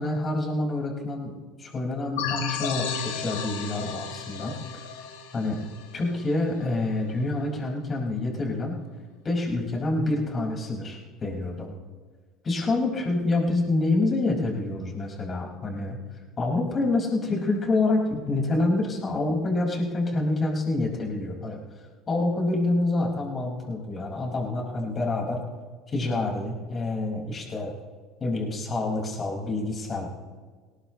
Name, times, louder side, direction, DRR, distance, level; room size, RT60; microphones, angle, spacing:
voice 1, 0.0-4.6 5.3-5.6 5.9-8.8 9.2-11.8 12.4-16.0 16.4-21.6 22.1-25.4 25.9-27.7 28.2-30.1, left 2 dB, 35° left, -1 dB, 5.5 m, -27 dB
sound 1, 2.2-6.6, left 6 dB, 85° left, 2.2 m, -33 dB
20.5 x 18.0 x 3.2 m, 1.5 s
hypercardioid pair, 85°, 0 cm